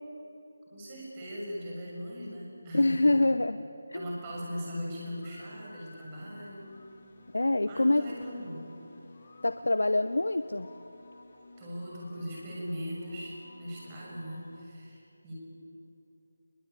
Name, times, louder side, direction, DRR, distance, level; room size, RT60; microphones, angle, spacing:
voice 1, 0.7-3.2 3.9-6.7 7.6-8.7 11.6-15.3, equal, 20° right, -4 dB, 6.5 m, -39 dB
voice 2, 2.7-4.2 7.3-8.1 9.4-10.7, left 2 dB, 85° left, 11 dB, 0.8 m, -26 dB
sound 1, 5.2-14.6, left 2 dB, 35° left, 3.4 m, -55 dB
22.5 x 22.0 x 9.3 m, 3.0 s
figure-of-eight pair, 170°, 0 cm